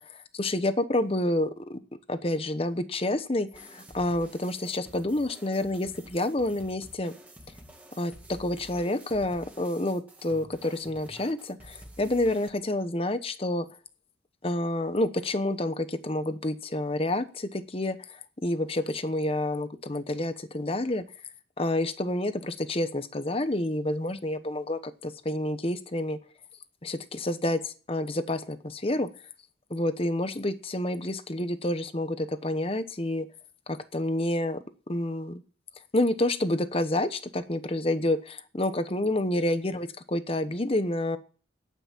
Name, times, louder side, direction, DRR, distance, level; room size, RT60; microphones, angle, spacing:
voice 1, 0.1-1.8 2.1-7.1 8.0-13.7 14.4-21.0 21.6-26.2 26.8-29.1 29.7-33.3 33.7-34.6 34.9-35.4 35.9-41.2, left 1 dB, 30° left, 11 dB, 1.0 m, -29 dB
sound 1, 3.5-12.5, right 1 dB, 10° right, 1.9 m, -50 dB
9.9 x 9.4 x 8.4 m, 0.40 s
head